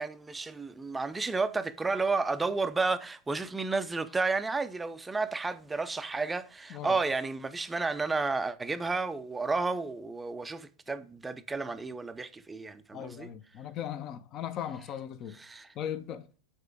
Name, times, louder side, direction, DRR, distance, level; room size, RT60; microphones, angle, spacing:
voice 1, 0.0-13.3 15.3-15.7, right 3 dB, 10° right, 0.5 m, -32 dB
voice 2, 12.9-15.4 15.8-16.4, left 10 dB, 35° left, 0.7 m, -38 dB
6.6 x 4.3 x 4.8 m
figure-of-eight pair, 90°, 0 cm